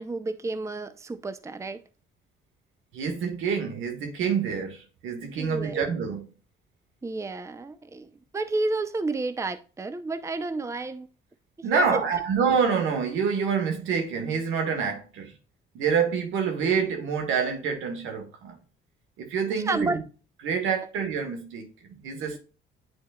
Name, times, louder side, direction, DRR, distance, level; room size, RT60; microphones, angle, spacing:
voice 1, 0.0-1.8 5.4-5.8 7.0-11.1 11.7-12.0 19.5-20.0, right 3 dB, 15° right, 0.6 m, -31 dB
voice 2, 2.9-6.3 11.6-15.3 15.7-18.6 19.2-20.0 20.4-22.4, right 6 dB, 90° right, 1.7 m, -27 dB
9.4 x 4.3 x 2.3 m
cardioid pair, 90°, 20 cm